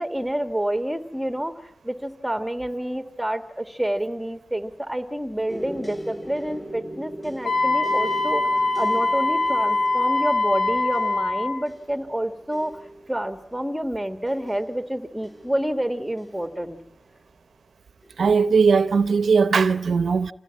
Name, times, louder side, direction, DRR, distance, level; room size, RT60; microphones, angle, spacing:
voice 1, 0.0-12.8 13.1-16.8, right 1 dB, 5° right, 1.8 m, -28 dB
sound 1, 5.5-17.3 18.0-18.5 18.9-19.1, equal, 20° left, 5.6 m, -41 dB
Wind instrument woodwind instrument, 7.4-11.6, left 2 dB, 65° left, 3.4 m, -23 dB
voice 2, 18.2-20.3, right 5 dB, 75° right, 0.8 m, -19 dB
26.5 x 16.5 x 8.6 m
cardioid pair, 75°, 0 cm